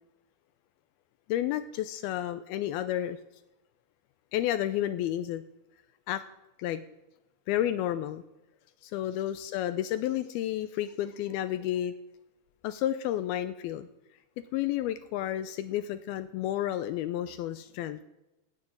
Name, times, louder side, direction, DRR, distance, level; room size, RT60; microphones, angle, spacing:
voice 1, 1.3-3.2 4.3-5.4 6.1-6.2 6.6-6.8 7.5-8.2 8.8-11.9 12.6-13.9 14.5-18.0, left 12 dB, 80° left, 11 dB, 2.3 m, -31 dB
12.5 x 9.6 x 8.6 m, 0.97 s
omnidirectional pair, 4.8 m